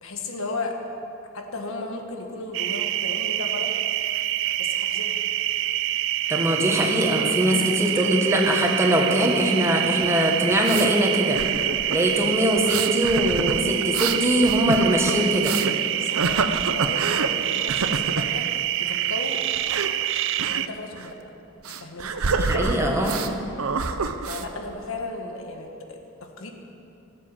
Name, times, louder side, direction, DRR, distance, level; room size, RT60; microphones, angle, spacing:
voice 1, 0.0-0.7 1.3-3.7 4.6-5.2 15.9-19.4 20.5-21.1 21.7-22.1 24.3-26.5, left 3 dB, 70° left, 3 dB, 1.6 m, -35 dB
sound 1, 2.5-20.7, right 13 dB, 60° right, 0.4 m, -26 dB
voice 2, 6.3-11.4 11.9-15.5 22.4-23.2, equal, 15° right, 0 dB, 1.6 m, -22 dB
sound 2, 10.0-10.9 11.4-12.0 12.6-15.7 16.1-17.3 17.7-18.3 19.6-19.9 20.4-20.6 20.9-21.1 21.6-23.3 23.6-24.4, right 4 dB, 85° right, 0.8 m, -27 dB
17.5 x 7.6 x 7.3 m, 2.7 s
head